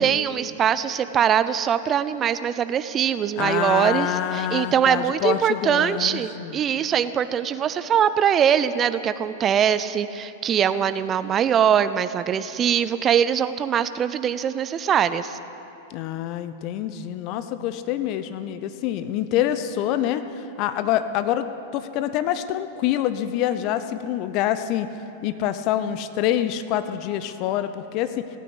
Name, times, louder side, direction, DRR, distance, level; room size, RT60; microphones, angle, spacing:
voice 1, 0.0-15.4, right 8 dB, 30° right, 13 dB, 0.5 m, -22 dB
voice 2, 3.4-6.6 15.9-21.5 21.7-24.9 25.2-28.2, left 11 dB, 45° left, 11 dB, 0.8 m, -26 dB
17.5 x 9.3 x 8.2 m, 2.9 s
figure-of-eight pair, 95°, 0 cm